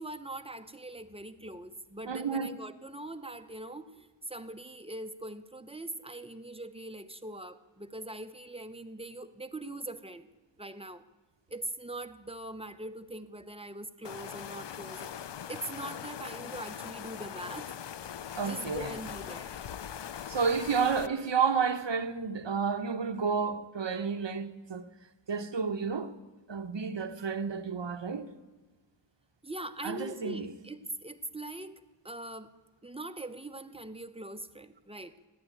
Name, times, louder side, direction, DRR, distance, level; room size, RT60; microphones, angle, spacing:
voice 1, 0.0-10.3 10.6-11.1 11.5-15.1 15.5-17.7 18.4-19.5 29.4-32.5 32.8-35.2, right 1 dB, 10° right, 0.8 m, -42 dB
voice 2, 2.1-2.5 18.4-18.9 20.3-24.8 25.3-26.1 26.5-28.3 29.8-30.5, right 6 dB, 60° right, 1.0 m, -31 dB
sound 1, 14.0-21.1, left 9 dB, 60° left, 0.5 m, -41 dB
14.5 x 9.9 x 9.0 m
wide cardioid pair, 70°, 50 cm